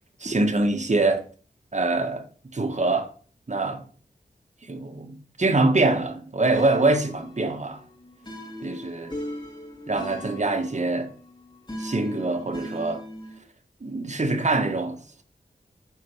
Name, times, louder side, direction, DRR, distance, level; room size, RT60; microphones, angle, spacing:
voice 1, 0.2-1.2 1.7-2.2 2.5-3.1 3.5-3.8 4.6-7.8 8.6-9.2 9.9-11.1 11.8-13.0 13.8-15.2, right 2 dB, 40° right, 1.5 m, -24 dB
sound 1, 6.5-13.4, left 1 dB, 25° left, 2.9 m, -39 dB
9.0 x 4.3 x 5.6 m
wide cardioid pair, 90°, 18 cm